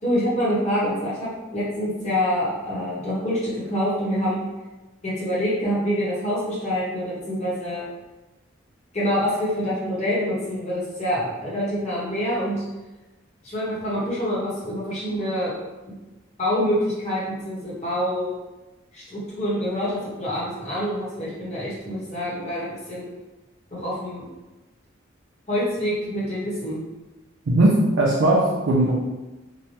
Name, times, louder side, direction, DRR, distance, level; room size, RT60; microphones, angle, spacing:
voice 1, 0.0-4.5 5.0-7.8 8.9-12.6 13.4-15.5 16.4-18.3 18.9-23.2 23.7-24.3 25.5-26.8, equal, 35° left, -8 dB, 1.1 m, -26 dB
voice 2, 27.5-28.9, right 1 dB, 70° right, -5 dB, 0.5 m, -18 dB
3.0 x 2.2 x 2.8 m, 1.1 s
head